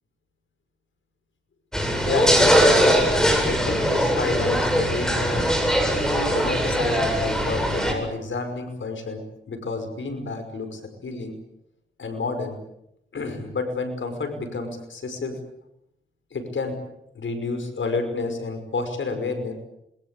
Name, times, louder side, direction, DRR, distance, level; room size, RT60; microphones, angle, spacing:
sound 1, 1.7-7.9, equal, 5° left, 7.9 m, -21 dB
voice 1, 2.1-5.5 6.3-11.3 12.0-12.6 13.1-15.4 16.3-16.8 17.1-19.5, left 3 dB, 80° left, 7 dB, 5.6 m, -30 dB
27.0 x 22.5 x 8.4 m, 0.83 s
cardioid pair, 50°, 20 cm